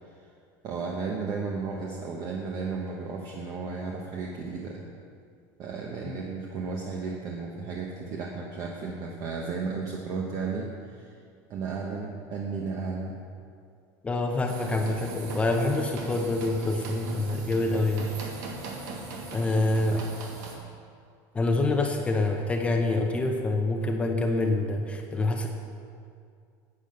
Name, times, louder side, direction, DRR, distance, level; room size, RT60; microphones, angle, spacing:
voice 1, 0.6-4.9 5.6-11.2 11.5-13.2 19.9-20.0, right 4 dB, 40° right, -1 dB, 1.1 m, -34 dB
voice 2, 14.0-18.1 19.3-20.0 21.3-25.5, left 2 dB, 15° left, 3 dB, 0.7 m, -26 dB
sound 1, 14.5-20.6, right 3 dB, 85° right, 2.1 m, -39 dB
9.9 x 8.6 x 6.5 m, 2.3 s
cardioid pair, 155°, 9 cm